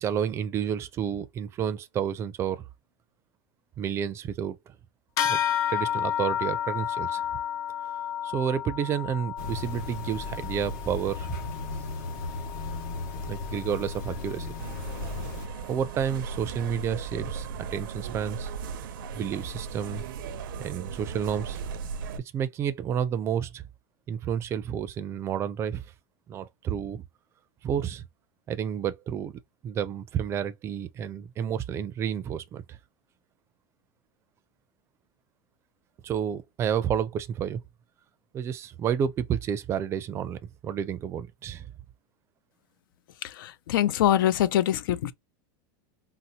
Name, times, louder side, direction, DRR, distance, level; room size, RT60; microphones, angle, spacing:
voice 1, 0.0-2.6 3.8-4.6 5.3-5.4 5.7-7.2 8.2-11.4 13.3-14.5 15.7-18.5 19.1-20.0 20.6-21.6 22.3-23.6 24.1-25.8 26.3-27.0 27.6-28.0 28.5-32.8 36.0-37.6 38.3-41.7, right 8 dB, 25° right, 0.4 m, -30 dB
sound 1, 5.2-15.0, left 10 dB, 30° left, 0.5 m, -32 dB
sound 2, 9.4-15.5, left 3 dB, 70° left, 1.3 m, -36 dB
sound 3, 14.6-22.2, right 5 dB, 90° right, 0.5 m, -37 dB
voice 2, 43.2-45.1, left 11 dB, 90° left, 0.4 m, -24 dB
4.0 x 2.0 x 2.8 m
supercardioid pair, 155°, 11 cm